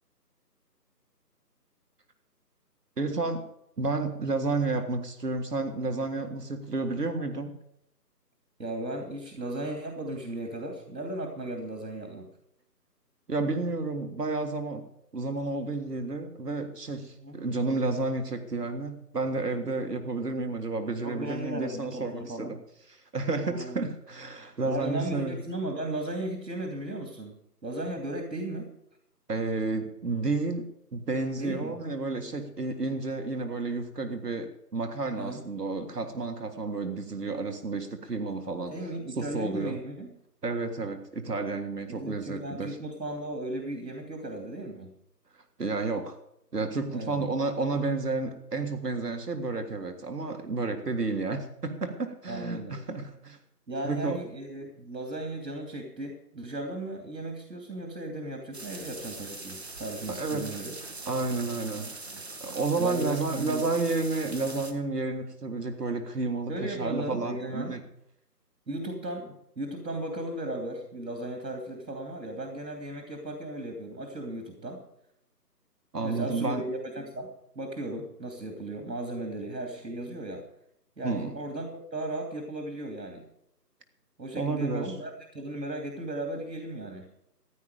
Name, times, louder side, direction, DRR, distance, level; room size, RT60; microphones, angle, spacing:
voice 1, 3.0-3.4 3.8-7.6 13.3-14.8 15.1-22.6 22.9-25.4 29.3-38.7 39.2-39.8 40.4-42.8 45.6-46.2 46.5-53.4 53.8-54.2 60.1-60.5 61.1-61.9 62.4-67.8 75.9-76.6 81.0-81.3 84.3-84.9, right 3 dB, 70° right, 6 dB, 1.8 m, -31 dB
voice 2, 8.6-12.3 17.2-17.4 21.0-22.6 23.4-23.9 24.6-28.7 31.4-31.8 35.2-35.4 38.7-40.1 41.9-44.9 46.9-47.2 50.7-50.8 52.3-52.8 53.7-60.7 61.8-62.2 62.8-63.6 66.5-67.7 68.7-74.8 76.0-80.5 81.0-83.3 84.2-87.1, right 1 dB, 85° right, 3 dB, 2.9 m, -36 dB
sound 1, 58.5-64.7, right 3 dB, 40° right, 1.4 m, -42 dB
15.0 x 10.5 x 5.1 m, 0.77 s
figure-of-eight pair, 170°, 50 cm